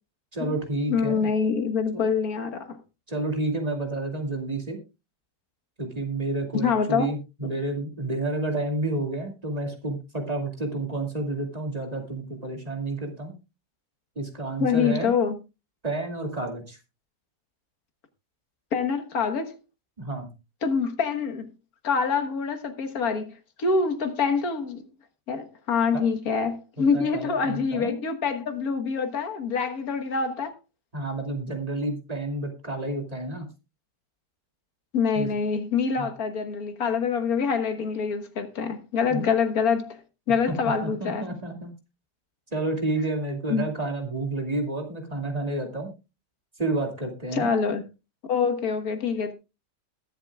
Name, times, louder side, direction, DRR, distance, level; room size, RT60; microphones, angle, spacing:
voice 1, 0.3-1.3 1.9-2.1 3.1-4.8 5.8-13.3 14.2-15.1 15.8-16.8 20.0-20.3 25.9-26.0 26.8-28.0 30.9-33.5 35.1-35.3 36.0-36.1 39.1-39.3 40.5-40.6 40.8-41.7 42.5-45.9 46.6-47.5, right 2 dB, 20° right, 2.5 m, -30 dB
voice 2, 0.9-2.8 6.5-7.1 14.6-15.4 18.7-19.6 20.6-21.5 21.8-24.8 25.3-30.5 34.9-40.0 40.3-41.3 43.5-43.6 47.3-47.8 48.3-49.3, left 5 dB, 60° left, 1.8 m, -25 dB
21.5 x 7.5 x 2.3 m
omnidirectional pair, 1.8 m